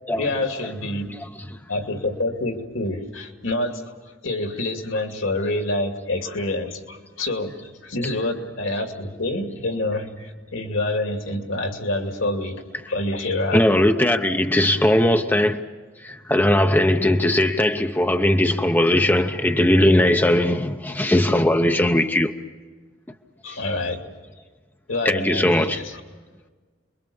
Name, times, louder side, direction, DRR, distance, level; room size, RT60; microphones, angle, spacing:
voice 1, 0.1-1.1 1.7-4.0 4.2-13.6 23.4-24.0 24.9-26.0, left 2 dB, 85° left, 2.5 m, -27 dB
voice 2, 13.5-15.6 16.0-22.3 25.0-25.8, left 1 dB, 10° left, 0.8 m, -19 dB
28.5 x 22.5 x 7.1 m
head